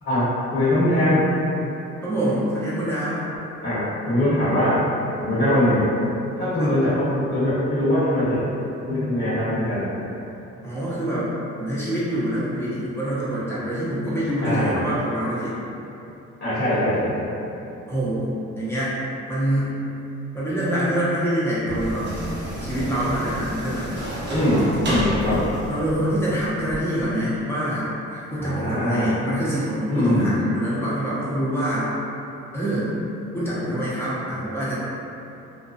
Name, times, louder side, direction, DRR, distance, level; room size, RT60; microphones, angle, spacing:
voice 1, 0.0-1.2 3.6-4.8 5.2-5.9 6.4-8.4 8.9-9.8 14.4-14.8 16.4-17.3 24.3-25.4 28.4-29.1 29.9-30.3, left 1 dB, 40° left, -13 dB, 1.1 m, -22 dB
voice 2, 2.0-3.2 6.6-6.7 10.6-11.3 11.6-15.6 17.9-19.0 19.3-19.8 20.3-22.1 22.6-24.0 25.7-31.9 32.5-32.9 33.3-34.7, right 1 dB, 10° left, -10 dB, 0.9 m, -25 dB
sound 1, 21.6-26.8, equal, 35° right, 0.7 m, -29 dB
2.5 x 2.1 x 2.5 m, 2.9 s
cardioid pair, 90°, 30 cm